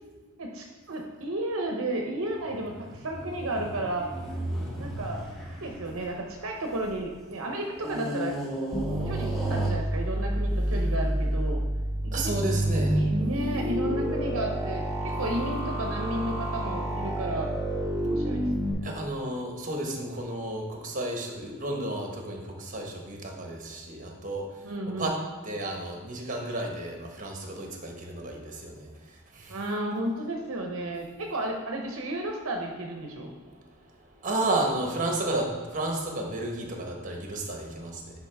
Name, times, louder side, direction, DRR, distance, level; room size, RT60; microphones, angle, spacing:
voice 1, 0.4-4.1 4.8-5.2 5.6-8.4 9.1-11.6 12.0-12.4 12.9-17.5 18.0-18.9 24.6-25.1 29.5-33.3, right 1 dB, 70° right, 1 dB, 0.8 m, -33 dB
sound 1, 2.3-7.0 7.8-10.3 11.0-11.1, equal, ahead, 1.4 m, -36 dB
sound 2, 8.7-18.7, right 1 dB, 15° right, 1.1 m, -28 dB
voice 2, 12.1-13.0 18.8-24.4 25.0-25.2 25.4-28.9 29.3-29.6 34.2-38.3, right 2 dB, 35° right, 1 dB, 1.2 m, -32 dB
9.8 x 4.8 x 3.5 m, 1.4 s
head